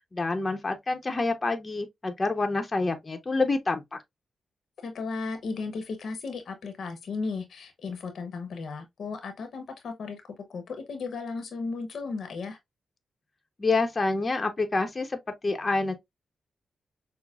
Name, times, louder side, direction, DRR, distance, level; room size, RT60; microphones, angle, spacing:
voice 1, 0.1-4.0 13.6-15.2 15.4-16.0, left 3 dB, 35° left, 0.7 m, -27 dB
voice 2, 4.8-10.2 10.5-12.6, left 4 dB, 75° left, 0.8 m, -35 dB
5.9 x 2.0 x 2.3 m
cardioid pair, 65°, 0 cm